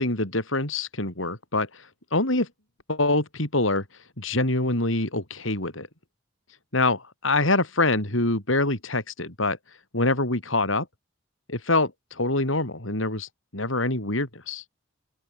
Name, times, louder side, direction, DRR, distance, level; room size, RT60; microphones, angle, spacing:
voice 1, 0.0-1.7 2.1-2.5 2.9-3.8 4.2-5.9 6.7-9.6 9.9-10.9 11.5-14.6, left 2 dB, 80° left, 6.2 m, -25 dB
open air
head